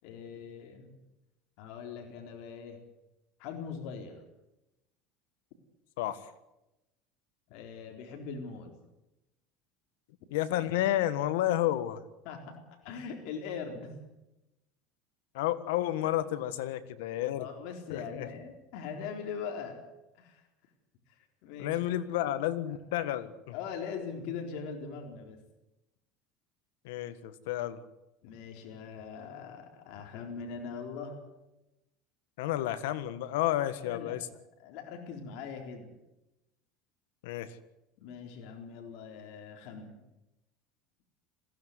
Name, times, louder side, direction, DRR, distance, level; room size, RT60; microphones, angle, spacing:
voice 1, 0.0-0.9 1.6-2.8 3.4-4.2 7.5-8.7 12.2-12.6 12.8-13.9 17.4-19.8 20.1-20.5 21.1-21.8 23.5-25.4 28.2-31.2 33.8-34.2 34.6-35.9 38.0-40.0, left 6 dB, 70° left, 3 dB, 4.1 m, -41 dB
voice 2, 10.3-12.0 15.3-17.5 17.9-18.3 21.6-23.3 26.8-27.8 32.4-34.2 37.2-37.6, left 13 dB, 90° left, 14 dB, 1.5 m, -31 dB
21.5 x 16.0 x 9.6 m, 0.95 s
supercardioid pair, 135°, 0 cm